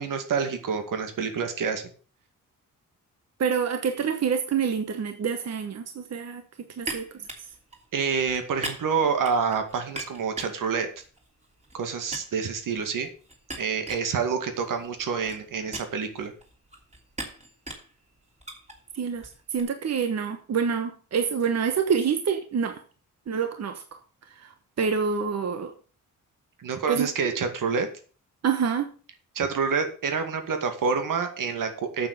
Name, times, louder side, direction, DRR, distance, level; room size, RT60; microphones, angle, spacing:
voice 1, 0.0-1.8 7.9-10.9 11.7-13.1 13.6-16.3 26.6-27.9 29.3-32.1, right 5 dB, 75° right, 2.2 m, -27 dB
voice 2, 3.4-6.4 6.8-7.0 18.9-22.8 23.3-23.8 24.4-25.7 26.9-27.4 28.4-28.9, right 6 dB, 50° right, 1.2 m, -27 dB
sound 1, 6.8-11.8 12.1-19.6, right 2 dB, 20° right, 3.0 m, -41 dB
8.9 x 7.3 x 6.9 m
cardioid pair, 115°, 32 cm